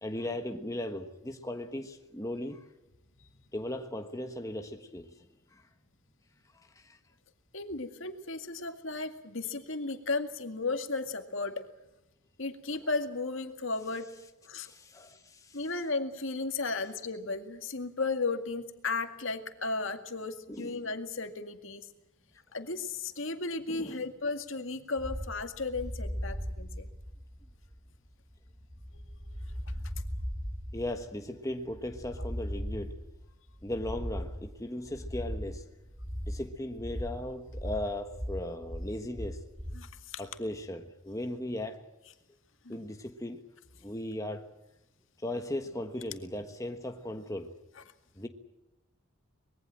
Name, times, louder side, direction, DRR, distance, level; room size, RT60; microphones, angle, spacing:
voice 1, 0.0-2.6 3.5-5.0 6.8-7.0 14.6-15.6 20.5-20.8 23.7-24.0 30.7-32.9 33.6-35.6 36.3-39.4 40.2-41.8 42.7-43.4 43.8-44.4 45.2-47.5 48.2-48.3, left 1 dB, 15° left, 1.4 m, -37 dB
voice 2, 7.5-11.7 12.4-14.1 14.4-14.7 15.5-21.9 22.5-26.9 28.9-29.0 39.7-40.2 42.6-42.8, left 3 dB, 65° left, 2.1 m, -35 dB
sound 1, 25.0-39.9, equal, 10° right, 2.4 m, -39 dB
24.5 x 21.5 x 7.6 m
head